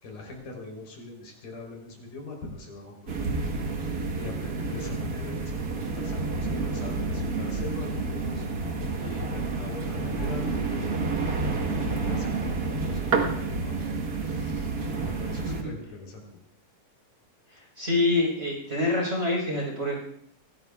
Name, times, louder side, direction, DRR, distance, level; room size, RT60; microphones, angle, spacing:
voice 1, 0.0-3.5 4.1-8.4 9.0-16.2, left 2 dB, 70° left, 1 dB, 5.2 m, -42 dB
sound 1, 3.1-15.6, right 3 dB, 85° right, 0.8 m, -29 dB
voice 2, 17.5-20.0, left 2 dB, 20° right, -3 dB, 4.0 m, -26 dB
24.0 x 17.0 x 2.4 m, 0.68 s
omnidirectional pair, 4.0 m